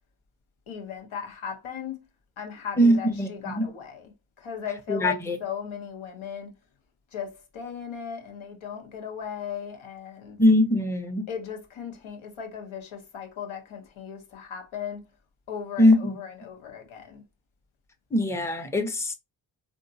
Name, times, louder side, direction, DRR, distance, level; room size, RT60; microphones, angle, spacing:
voice 1, 0.7-2.0 2.4-4.1 4.4-6.5 7.1-10.4 11.3-15.0 15.5-17.2, left 7 dB, 75° left, 1.1 m, -37 dB
voice 2, 2.8-3.7 4.9-5.4 10.4-11.3 15.8-16.1 18.1-19.1, left 1 dB, 5° left, 0.8 m, -21 dB
3.6 x 2.4 x 2.7 m
supercardioid pair, 40°, 49 cm